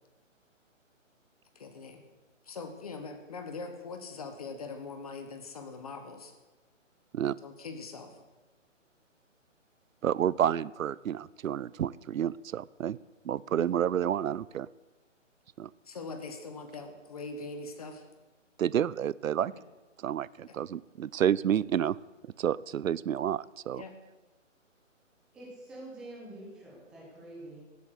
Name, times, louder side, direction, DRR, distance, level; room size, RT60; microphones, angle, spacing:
voice 1, 1.5-2.0 2.5-6.3 7.4-8.1 15.9-18.0 19.5-19.6 20.5-20.6 23.7-23.9, left 4 dB, 30° left, 7 dB, 1.4 m, -42 dB
voice 2, 10.0-13.0 13.2-14.7 15.6-15.7 18.6-19.5 20.0-22.0 22.4-23.8, right 10 dB, 90° right, 21 dB, 0.6 m, -29 dB
voice 3, 25.3-27.6, right 1 dB, ahead, -5 dB, 1.1 m, -46 dB
16.5 x 8.5 x 8.0 m, 1.2 s
hypercardioid pair, 175°, 39 cm